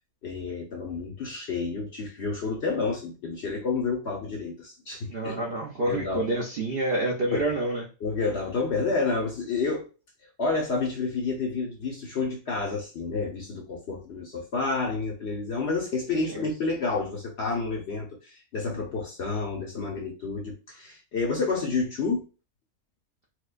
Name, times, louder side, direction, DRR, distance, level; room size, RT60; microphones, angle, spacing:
voice 1, 0.2-5.4 5.9-6.2 7.3-7.5 8.0-9.9 10.4-22.3, left 4 dB, 55° left, 1 dB, 0.8 m, -29 dB
voice 2, 5.1-7.8 16.1-16.5, right 2 dB, 55° right, -1 dB, 0.7 m, -28 dB
4.4 x 2.2 x 2.4 m, 0.33 s
omnidirectional pair, 1.6 m